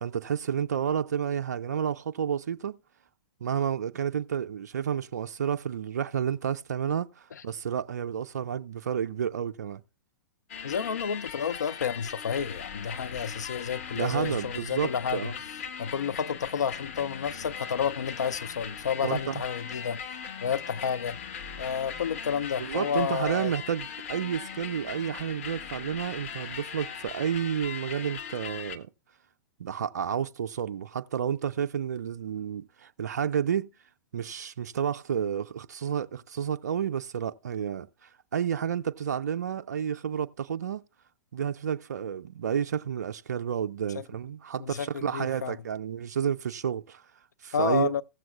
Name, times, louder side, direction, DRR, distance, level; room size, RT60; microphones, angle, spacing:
voice 1, 0.0-2.8 3.4-9.8 13.9-15.3 19.0-19.4 22.6-28.9 29.6-33.7 34.1-40.8 41.3-47.0 47.4-47.9, right 8 dB, 65° right, 0.4 m, -30 dB
sound 1, 10.5-28.8, left 7 dB, 50° left, 0.9 m, -39 dB
voice 2, 10.6-15.3 15.8-20.0 20.4-21.2 21.6-23.5 43.9-44.0 44.6-45.6 47.5-48.0, left 7 dB, 70° left, 0.4 m, -30 dB
16.0 x 7.5 x 2.3 m
figure-of-eight pair, 105°, 10 cm